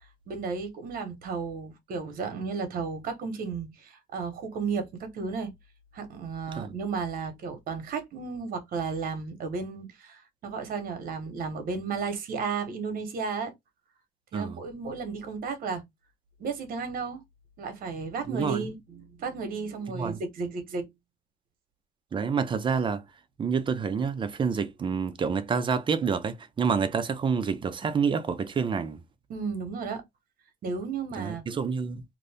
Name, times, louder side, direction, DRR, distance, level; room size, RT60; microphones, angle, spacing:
voice 1, 0.3-5.5 5.9-13.5 14.3-15.8 16.4-17.2 17.6-20.9 29.3-30.0 30.6-31.4, right 5 dB, 60° right, 1.1 m, -33 dB
voice 2, 18.3-18.7 19.9-20.2 22.1-23.0 23.4-29.0 31.2-32.0, right 6 dB, 30° right, 0.5 m, -28 dB
2.6 x 2.5 x 3.4 m
cardioid pair, 110°, 17 cm